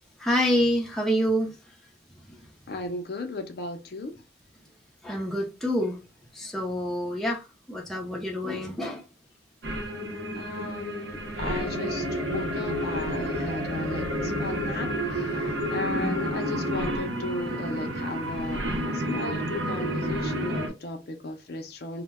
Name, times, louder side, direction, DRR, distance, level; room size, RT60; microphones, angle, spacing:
voice 1, 0.2-1.6 2.3-2.4 5.0-6.0 6.3-9.0 16.0-16.3, equal, ahead, 0.6 m, -27 dB
voice 2, 2.7-4.2 10.4-22.0, left 2 dB, 55° left, 0.4 m, -36 dB
sound 1, 9.6-20.7, equal, 90° right, 0.8 m, -30 dB
2.1 x 2.1 x 3.4 m
head